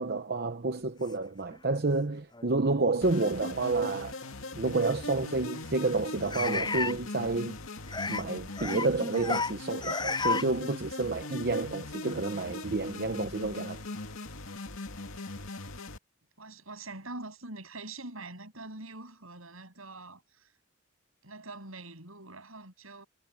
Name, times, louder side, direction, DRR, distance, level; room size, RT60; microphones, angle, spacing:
voice 1, 0.0-4.2 4.5-7.6 8.1-13.8, right 3 dB, 50° right, 0.8 m, -30 dB
sound 1, 1.5-1.6 2.3-2.5 4.1-4.2 6.3-7.0 7.9-8.2 8.6-8.9 9.1-9.5 9.8-10.5, left 4 dB, 20° left, 7.9 m, -31 dB
sound 2, 3.0-16.0, left 2 dB, 80° left, 2.5 m, -40 dB
voice 2, 16.4-20.5 21.2-23.1, right 2 dB, 80° right, 7.9 m, -44 dB
head